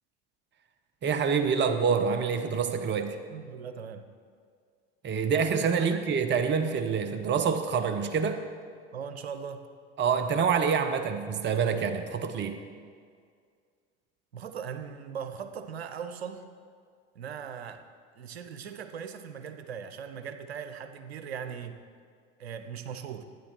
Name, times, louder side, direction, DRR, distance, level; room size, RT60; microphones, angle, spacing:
voice 1, 1.0-3.2 5.0-8.4 10.0-12.6, right 6 dB, 35° right, 8 dB, 1.0 m, -26 dB
voice 2, 3.3-4.1 5.8-6.1 8.9-9.7 14.3-16.5 17.1-17.8 18.2-21.8 22.4-23.2, right 7 dB, 85° right, 9 dB, 0.9 m, -39 dB
12.5 x 9.9 x 4.5 m, 2.1 s
hypercardioid pair, 75°, 31 cm